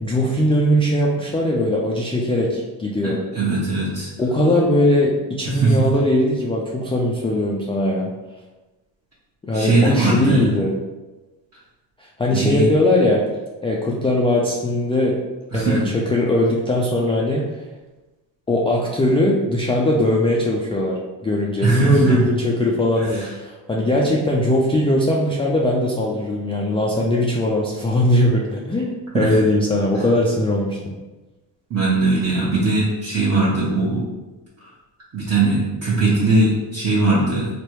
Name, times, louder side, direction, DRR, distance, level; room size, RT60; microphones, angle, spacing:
voice 1, 0.0-3.2 4.2-8.1 9.4-10.7 12.0-13.2 13.6-15.2 15.5-17.5 18.5-30.8, left 1 dB, 15° left, -3 dB, 0.3 m, -20 dB
voice 2, 3.0-4.1 5.5-5.8 9.5-10.4 12.3-12.7 15.5-15.8 21.6-22.2 23.0-23.3 29.1-29.4 31.7-34.0 34.6-34.7 35.1-37.5, right 3 dB, 35° right, -8 dB, 0.9 m, -20 dB
3.2 x 2.1 x 3.0 m, 1.1 s
supercardioid pair, 70°, 46 cm